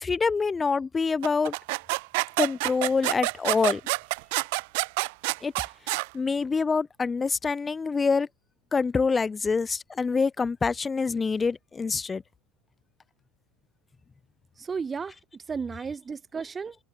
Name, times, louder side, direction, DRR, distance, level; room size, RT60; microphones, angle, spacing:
voice 1, 0.0-1.5 2.4-3.8 5.4-5.5 6.1-8.3 8.7-12.2, left 4 dB, 20° left, 2.5 m, -26 dB
sound 1, 1.2-6.1, right 27 dB, 55° right, 1.5 m, -28 dB
voice 2, 14.6-16.8, right 5 dB, 25° right, 2.9 m, -34 dB
figure-of-eight pair, 70°, 0 cm